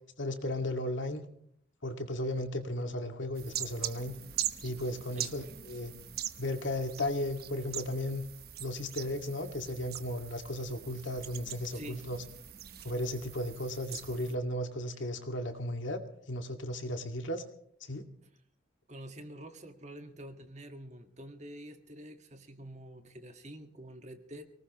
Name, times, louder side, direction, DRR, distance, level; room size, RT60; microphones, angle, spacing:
voice 1, 0.2-1.2 1.8-4.2 4.6-5.9 6.4-8.3 8.6-12.2 12.8-16.0 16.3-17.4 17.8-18.0, left 1 dB, 75° left, 5 dB, 2.3 m, -35 dB
sound 1, 3.4-14.3, right 11 dB, 50° right, 1.0 m, -42 dB
voice 2, 11.7-12.1 18.2-18.3 18.9-24.4, right 1 dB, 35° right, 6 dB, 1.8 m, -47 dB
24.5 x 19.0 x 3.1 m, 0.66 s
head